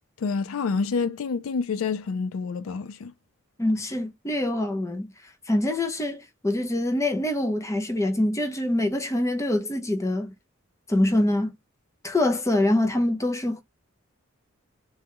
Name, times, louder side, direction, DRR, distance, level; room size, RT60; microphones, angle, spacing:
voice 1, 0.2-3.1, left 5 dB, 75° left, 0.4 m, -28 dB
voice 2, 3.6-5.1 5.5-10.3 10.9-11.5 12.0-13.6, left 1 dB, 15° left, 0.5 m, -25 dB
3.1 x 2.3 x 2.9 m
head